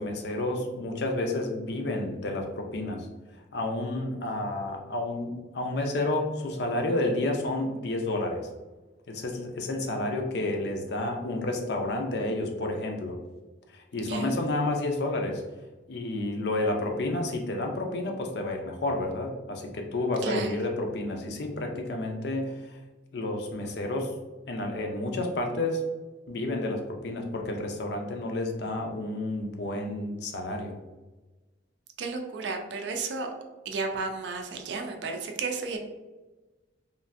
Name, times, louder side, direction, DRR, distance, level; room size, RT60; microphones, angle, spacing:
voice 1, 0.0-3.1 3.5-8.5 9.1-13.2 13.7-15.4 15.9-22.8 23.1-24.1 24.5-25.8 26.3-30.8, left 2 dB, 55° left, 3 dB, 0.5 m, -30 dB
voice 2, 20.2-20.6 32.0-33.3 33.7-35.8, right 4 dB, 65° right, 4 dB, 0.4 m, -32 dB
3.1 x 2.5 x 2.4 m, 1.2 s
head